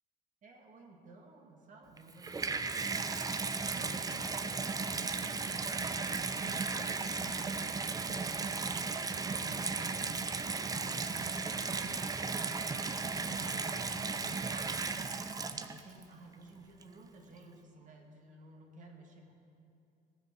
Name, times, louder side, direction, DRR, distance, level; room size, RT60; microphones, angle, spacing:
voice 1, 0.4-7.5 8.0-10.0 10.3-19.3, right 2 dB, 50° right, 2 dB, 1.9 m, -55 dB
Water tap faucet / Bathtub (filling or washing), 2.0-16.0 16.8-16.9, right 4 dB, 20° right, 0.6 m, -35 dB
17.0 x 7.1 x 6.2 m, 2.5 s
cardioid pair, 110°, 17 cm